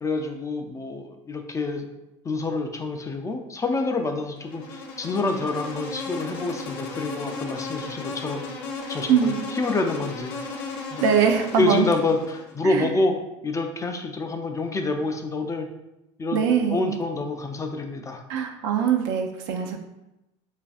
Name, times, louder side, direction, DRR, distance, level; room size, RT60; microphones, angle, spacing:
voice 1, 0.0-1.8 2.2-8.4 8.9-10.3 10.9-11.0 11.5-13.1 13.4-15.7 16.2-16.4 16.7-18.2, left 3 dB, 20° left, 5 dB, 0.4 m, -27 dB
Insect, 4.4-12.6, left 3 dB, 70° left, 0.5 m, -35 dB
voice 2, 9.1-9.4 11.0-11.9 12.6-12.9 16.3-16.9 18.3-19.8, right 7 dB, 70° right, 4 dB, 0.4 m, -22 dB
3.2 x 2.4 x 2.3 m, 0.90 s
hypercardioid pair, 75°, 16 cm